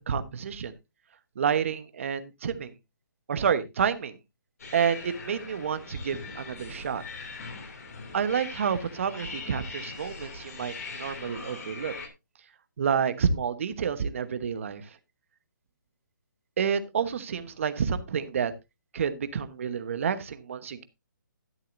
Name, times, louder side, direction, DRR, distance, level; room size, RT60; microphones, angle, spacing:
voice 1, 0.1-0.7 1.4-2.7 3.3-4.1 4.7-7.0 8.1-11.9 12.8-14.9 16.6-18.5 18.9-20.8, right 7 dB, 40° right, 12 dB, 1.1 m, -29 dB
sound 1, 4.6-12.1, left 4 dB, 50° left, 3.0 m, -41 dB
12.5 x 10.0 x 2.6 m, 0.23 s
hypercardioid pair, 170°, 11 cm